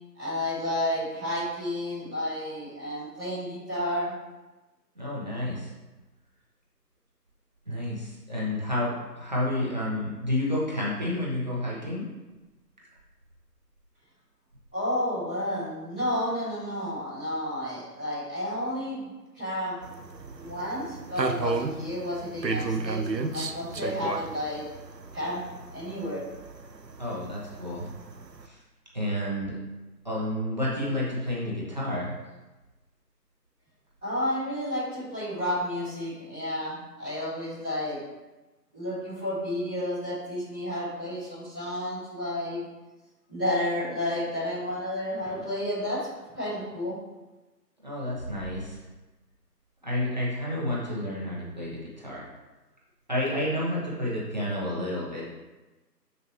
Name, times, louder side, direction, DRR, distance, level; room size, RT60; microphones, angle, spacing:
voice 1, 0.1-4.1 14.7-19.8 20.4-24.6 25.1-25.4 25.7-26.2 34.0-38.0 38.7-42.6 43.3-46.1 46.3-47.0, left 1 dB, 5° left, -20 dB, 1.4 m, -31 dB
voice 2, 5.0-5.7 7.7-12.0 27.0-27.9 28.4-28.6 28.9-29.5 30.0-32.1 47.8-48.8 49.8-52.2 53.1-55.2, left 1 dB, 25° right, -7 dB, 1.2 m, -30 dB
sound 1, 19.8-28.5, right 3 dB, 80° right, 0.9 m, -34 dB
7.4 x 6.9 x 3.2 m, 1.1 s
figure-of-eight pair, 165°, 50 cm